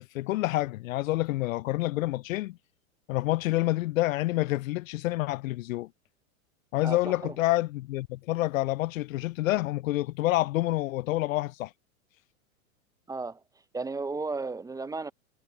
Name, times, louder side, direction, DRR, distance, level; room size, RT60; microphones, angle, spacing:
voice 1, 0.0-2.6 3.1-5.9 6.7-11.7, left 17 dB, 65° left, 0.5 m, -28 dB
voice 2, 6.8-7.3 13.1-13.4 13.7-15.1, right 3 dB, 10° right, 0.8 m, -34 dB
hypercardioid pair, 115°, 42 cm